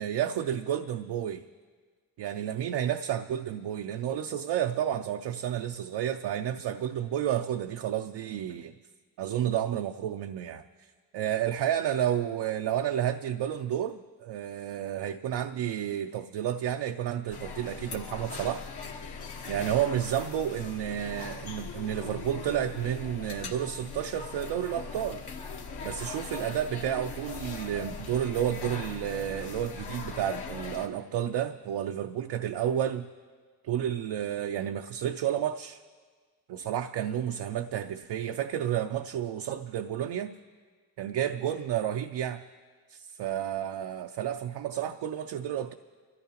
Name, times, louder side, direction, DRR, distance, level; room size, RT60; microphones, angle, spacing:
voice 1, 0.0-1.5 2.2-8.7 9.2-10.6 11.1-18.6 19.5-25.2 25.8-33.1 33.6-35.8 36.5-40.3 41.0-42.4 42.9-45.7, right 10 dB, 85° right, 6 dB, 0.5 m, -31 dB
sound 1, 17.3-30.9, left 5 dB, 80° left, 1.4 m, -40 dB
24.5 x 14.0 x 2.9 m, 1.5 s
cardioid pair, 60°, 39 cm